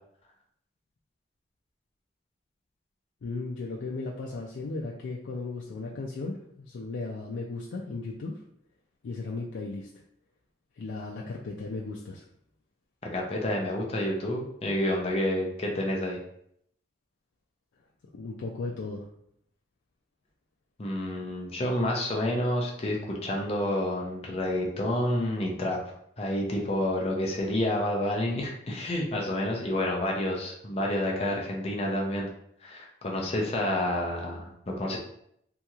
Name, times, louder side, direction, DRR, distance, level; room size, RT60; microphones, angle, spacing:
voice 1, 3.2-8.4 9.0-9.9 10.8-12.3 18.1-19.1, left 3 dB, 90° left, -2 dB, 0.4 m, -36 dB
voice 2, 13.0-16.2 20.8-25.8 26.2-32.3 32.6-35.0, left 1 dB, 35° left, -1 dB, 0.5 m, -29 dB
2.9 x 2.8 x 2.3 m, 0.71 s
head